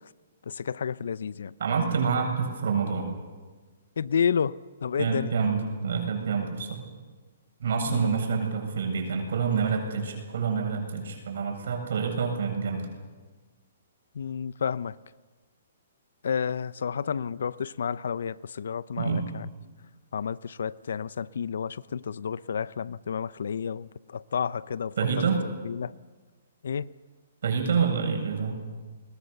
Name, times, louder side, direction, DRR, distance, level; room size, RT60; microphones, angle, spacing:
voice 1, 0.5-1.5 4.0-5.3 7.8-8.1 14.1-15.0 16.2-19.5 20.1-24.9 25.6-25.9 26.6-26.9, left 7 dB, 75° left, 0.7 m, -30 dB
voice 2, 1.6-3.1 5.0-6.9 7.6-12.9 19.0-19.2 25.0-25.4 27.4-28.6, right 5 dB, 70° right, 7.7 m, -27 dB
29.5 x 21.5 x 6.9 m
hypercardioid pair, 140°, 0 cm